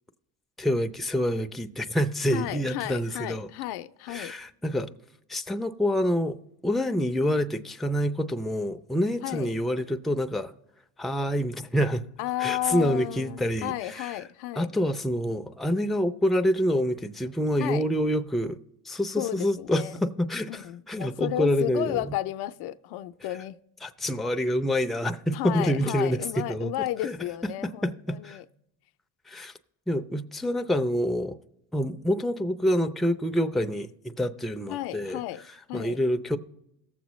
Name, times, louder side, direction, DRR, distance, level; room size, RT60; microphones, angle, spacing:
voice 1, 0.6-3.5 4.1-4.9 5.3-6.4 6.6-10.5 11.0-12.0 12.4-14.1 14.6-18.6 18.9-22.2 23.8-26.7 27.0-27.2 27.4-27.5 27.8-28.4 29.3-29.5 29.9-31.4 31.7-35.2 35.7-36.4, equal, ahead, 0.5 m, -27 dB
voice 2, 2.3-4.3 9.2-9.5 12.2-14.7 17.6-17.9 19.2-19.9 20.5-23.6 25.3-28.4 34.7-36.0, left 15 dB, 75° left, 0.6 m, -33 dB
17.5 x 7.3 x 3.1 m
supercardioid pair, 80°, 39 cm